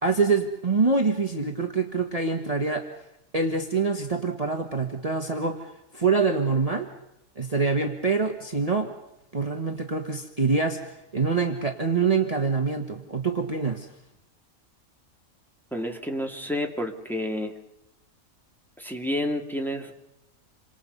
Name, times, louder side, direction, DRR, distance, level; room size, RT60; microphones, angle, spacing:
voice 1, 0.0-2.9 3.3-6.9 7.4-8.9 9.3-13.9, right 4 dB, 25° right, 3 dB, 1.7 m, -25 dB
voice 2, 15.7-17.5 18.8-19.9, left 1 dB, ahead, 2 dB, 2.5 m, -30 dB
28.5 x 26.0 x 5.6 m, 0.82 s
omnidirectional pair, 1.5 m